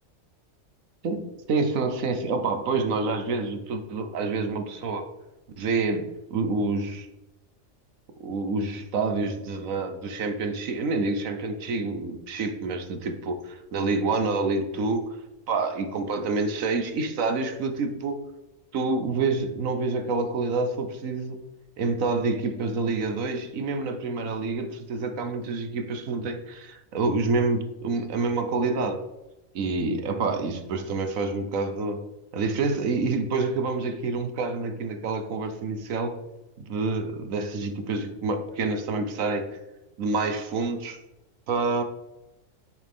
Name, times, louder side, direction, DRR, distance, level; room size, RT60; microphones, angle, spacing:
voice 1, 1.0-5.0 5.6-7.1 8.2-15.2 15.5-18.2 18.7-21.4 21.8-29.0 29.5-32.0 32.3-36.2 36.6-39.5 40.0-41.0 41.5-41.8, right 3 dB, 90° right, 7 dB, 1.4 m, -27 dB
10.0 x 6.2 x 3.6 m, 0.97 s
omnidirectional pair, 1.4 m